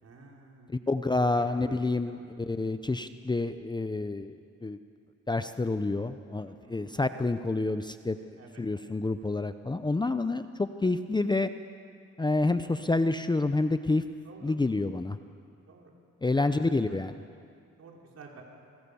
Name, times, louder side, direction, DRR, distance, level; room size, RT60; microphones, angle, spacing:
voice 1, 0.0-0.8 1.3-1.8 2.1-2.3 6.5-6.9 8.4-8.6 14.2-14.6 15.7-15.9 16.4-17.0 17.8-18.4, right 4 dB, 55° right, -1 dB, 5.4 m, -50 dB
voice 2, 0.7-4.8 5.3-8.2 8.6-11.5 12.2-14.0 14.4-15.2 16.2-17.1, left 2 dB, 15° left, 10 dB, 0.8 m, -28 dB
28.0 x 21.5 x 7.1 m, 2.4 s
cardioid pair, 90°, 30 cm